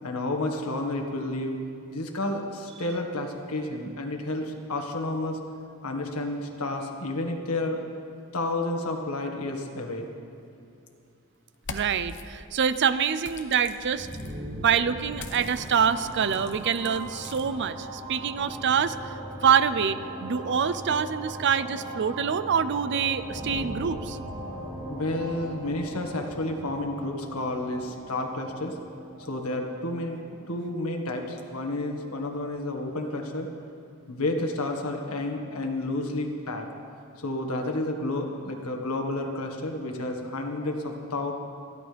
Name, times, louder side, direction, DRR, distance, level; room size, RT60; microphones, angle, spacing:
voice 1, 0.0-1.6 1.9-5.4 5.8-7.8 8.3-10.1 24.9-28.8 29.2-33.5 34.1-36.7 37.2-41.3, left 2 dB, 85° left, 3 dB, 1.7 m, -31 dB
sound 1, 11.5-12.2 13.2-14.3 15.1-17.4, left 4 dB, 55° left, 1.0 m, -42 dB
voice 2, 11.7-14.1 14.6-19.0 19.4-24.2, right 7 dB, 55° right, 13 dB, 0.5 m, -25 dB
sound 2, 13.7-31.4, right 1 dB, 30° right, 2.9 m, -39 dB
29.0 x 11.5 x 3.4 m, 2.5 s
head